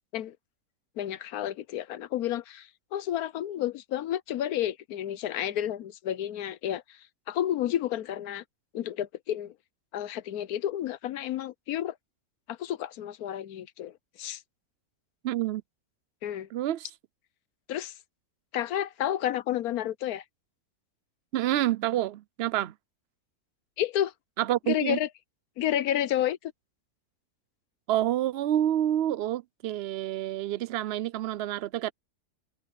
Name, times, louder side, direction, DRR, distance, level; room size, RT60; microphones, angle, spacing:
voice 1, 1.0-7.0 7.3-8.4 8.7-9.5 9.9-11.9 12.5-14.4 16.2-16.5 17.7-17.9 18.5-20.2 23.8-24.1 24.7-25.1 25.6-26.5, left 11 dB, 85° left, 1.2 m, -31 dB
voice 2, 15.2-15.6 16.5-16.9 21.3-22.7 24.4-25.0 27.9-31.9, right 12 dB, 65° right, 0.6 m, -28 dB
omnidirectional pair, 1.6 m